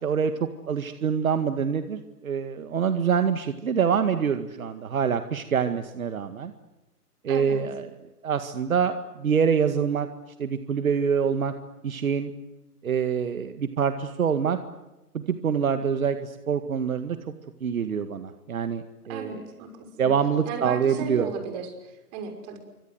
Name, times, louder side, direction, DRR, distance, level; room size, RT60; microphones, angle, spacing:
voice 1, 0.0-6.5 7.2-7.9 8.2-10.1 10.4-11.5 11.8-12.3 12.8-14.6 15.1-17.2 17.6-19.4 20.0-21.3, right 7 dB, 60° right, 9 dB, 2.0 m, -25 dB
voice 2, 7.3-7.6 19.1-19.7 20.0-20.1 20.4-22.6, right 5 dB, 25° right, 6 dB, 6.0 m, -35 dB
26.5 x 25.5 x 8.1 m, 1.0 s
hypercardioid pair, 145°, 46 cm